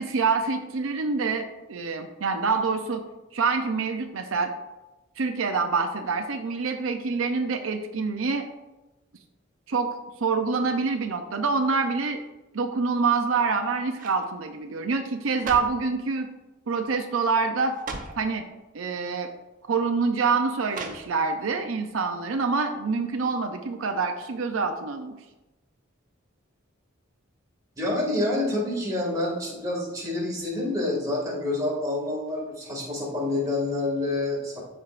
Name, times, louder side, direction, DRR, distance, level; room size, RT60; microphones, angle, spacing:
voice 1, 0.0-3.0 3.3-4.5 5.2-8.4 9.7-9.9 10.2-12.2 12.5-16.3 16.7-17.7 18.2-18.4 18.7-19.3 19.7-25.1, right 4 dB, 80° right, 5 dB, 0.6 m, -26 dB
sound 1, 13.1-13.5 13.9-14.3 15.1-15.9 16.7-16.9 17.2-17.3 17.7-18.3 19.2-19.3 20.7-21.4 21.8-21.9, right 3 dB, 40° right, 0.8 m, -39 dB
voice 2, 27.8-34.6, left 2 dB, 15° right, -4 dB, 2.1 m, -27 dB
13.0 x 4.6 x 2.5 m, 1.0 s
head